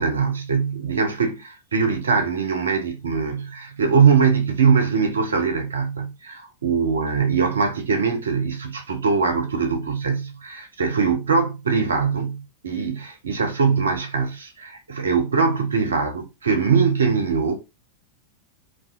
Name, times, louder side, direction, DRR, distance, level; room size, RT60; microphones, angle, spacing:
voice 1, 0.0-17.6, right 5 dB, 70° right, 0.6 m, -22 dB
2.3 x 2.3 x 2.4 m
figure-of-eight pair, 90°, 0 cm